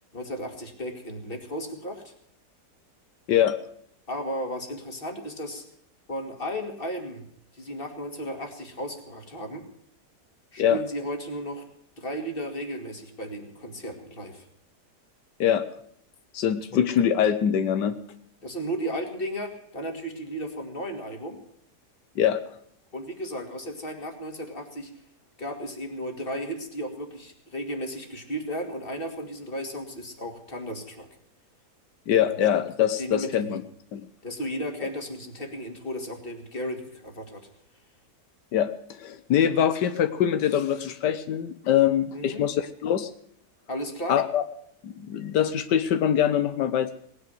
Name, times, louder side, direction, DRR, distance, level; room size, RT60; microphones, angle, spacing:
voice 1, 0.1-2.1 4.1-5.6 6.1-7.2 7.5-9.6 10.5-11.6 12.0-14.5 16.7-16.8 18.4-21.4 22.9-24.9 25.4-31.1 32.4-32.5 33.0-33.6 34.2-37.5 42.1-42.4 43.7-44.2, equal, 30° left, 5 dB, 2.6 m, -34 dB
voice 2, 16.3-18.0 22.2-22.4 32.1-33.6 33.9-34.1 38.5-43.1 44.1-44.4 44.8-46.9, left 9 dB, 85° left, 11 dB, 1.5 m, -23 dB
18.5 x 9.7 x 7.8 m, 0.69 s
omnidirectional pair, 1.8 m